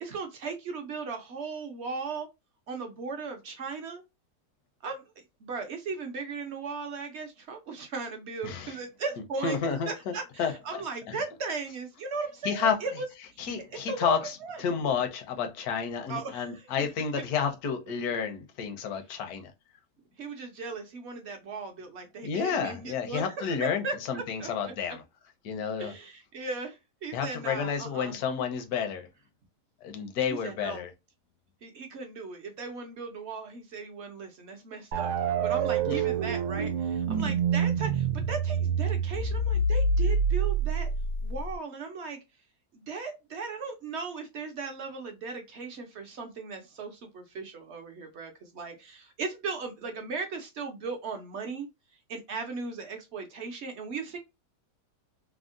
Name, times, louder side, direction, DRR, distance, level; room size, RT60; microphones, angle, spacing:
voice 1, 0.0-2.3 2.7-4.0 4.8-5.1 5.4-13.1 13.7-14.6 16.1-16.7 20.2-24.5 25.8-28.2 30.3-30.8 31.6-35.1 35.4-40.9 41.2-42.2 42.7-51.7 52.1-54.2, right 4 dB, 60° right, 0.7 m, -37 dB
voice 2, 8.4-8.8 9.4-10.8 11.1-11.2 12.4-12.8 13.4-19.5 22.2-25.0 25.4-25.9 27.1-29.1 29.8-30.9 35.9-36.0, left 6 dB, 70° left, 1.2 m, -31 dB
sound 1, 34.9-41.6, right 4 dB, 90° right, 1.2 m, -27 dB
3.5 x 2.1 x 2.4 m
omnidirectional pair, 1.7 m